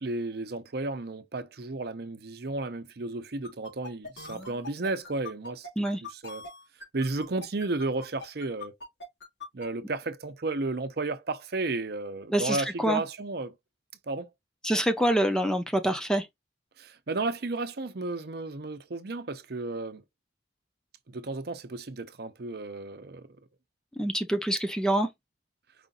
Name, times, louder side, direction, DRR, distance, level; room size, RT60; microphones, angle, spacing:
voice 1, 0.0-5.7 6.0-6.4 6.9-8.7 9.5-13.5 14.1-14.3 16.8-20.0 21.1-23.3, right 3 dB, 60° right, 0.7 m, -33 dB
sound 1, 3.4-9.7, left 3 dB, 90° left, 2.8 m, -42 dB
voice 2, 14.6-16.2 24.0-25.1, right 1 dB, 5° left, 0.6 m, -25 dB
5.0 x 2.6 x 3.8 m
head